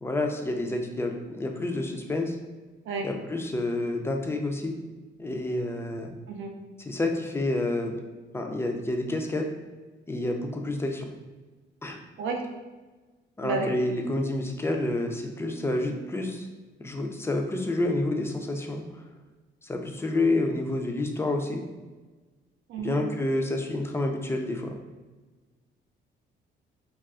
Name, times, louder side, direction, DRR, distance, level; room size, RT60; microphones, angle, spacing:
voice 1, 0.0-2.4 3.0-4.7 5.2-6.1 6.8-7.9 8.3-9.5 10.1-11.1 11.8-12.0 13.4-16.5 16.8-18.8 19.6-21.6 22.8-24.7, left 2 dB, 10° left, 3 dB, 0.3 m, -29 dB
voice 2, 6.3-6.6 12.2-12.4 13.4-13.7 22.7-23.0, right 4 dB, 80° right, 3 dB, 0.5 m, -31 dB
2.3 x 2.3 x 3.5 m, 1.3 s
cardioid pair, 90°, 20 cm